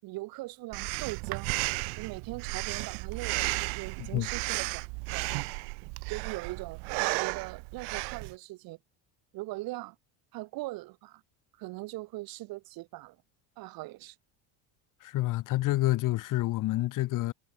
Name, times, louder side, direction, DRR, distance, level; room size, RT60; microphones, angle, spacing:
voice 1, 0.0-1.5 2.0-4.8 5.1-5.5 6.1-6.8 7.1-8.8 9.3-10.0 10.3-11.2 11.6-13.2 13.6-14.2, right 20 dB, 60° right, 7.3 m, -40 dB
Breathing, 0.7-8.3, right 32 dB, 85° right, 3.7 m, -34 dB
voice 2, 15.0-17.3, left 16 dB, 50° left, 4.8 m, -28 dB
cardioid pair, 175°, 40 cm